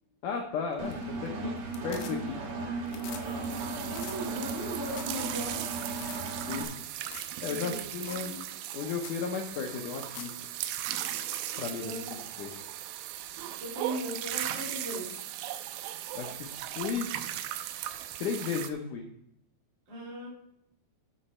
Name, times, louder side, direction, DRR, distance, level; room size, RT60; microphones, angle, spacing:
voice 1, 0.2-1.5 1.8-2.4 6.5-6.7 7.4-8.3 8.7-10.3 11.6-12.5 16.1-17.1 18.2-19.1, left 6 dB, 90° left, 2 dB, 1.8 m, -34 dB
sound 1, 0.7-1.3 1.6-2.5 2.8-3.3 3.5-3.6 3.9-4.2 4.6-4.7 4.9-5.2 5.5-5.6 5.9-6.2 7.0-7.4 7.6-7.7 8.0-8.3 8.6-8.7 9.0-9.2 9.9-10.4 12.6-12.7, left 8 dB, 70° left, 2.5 m, -46 dB
Engine, 0.8-6.6, right 3 dB, 75° right, 1.3 m, -36 dB
voice 2, 3.1-5.7 7.4-8.4 11.7-12.3 13.6-15.2 19.9-20.3, equal, 30° right, -6 dB, 3.0 m, -39 dB
sound 2, 3.2-18.7, right 12 dB, 90° right, 2.2 m, -38 dB
10.0 x 7.8 x 4.3 m, 0.75 s
omnidirectional pair, 5.0 m